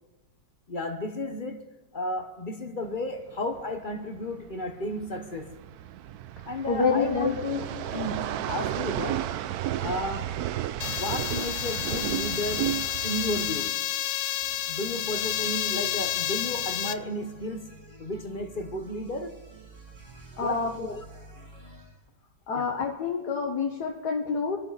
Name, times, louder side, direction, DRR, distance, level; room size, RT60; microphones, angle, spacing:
voice 1, 0.7-5.6 6.5-9.3 9.8-10.4 10.9-13.8 14.7-19.5 20.4-21.0 22.5-22.7, left 1 dB, 35° left, 1.0 m, -33 dB
sound 1, 2.8-13.7, right 12 dB, 70° right, 1.1 m, -33 dB
voice 2, 6.7-7.6 20.4-20.8 22.5-24.6, left 5 dB, 70° left, 1.9 m, -27 dB
sound 2, 10.8-16.9, left 12 dB, 90° left, 1.3 m, -30 dB
sound 3, 14.4-21.9, right 1 dB, 45° right, 3.3 m, -49 dB
25.0 x 11.5 x 4.1 m
omnidirectional pair, 1.8 m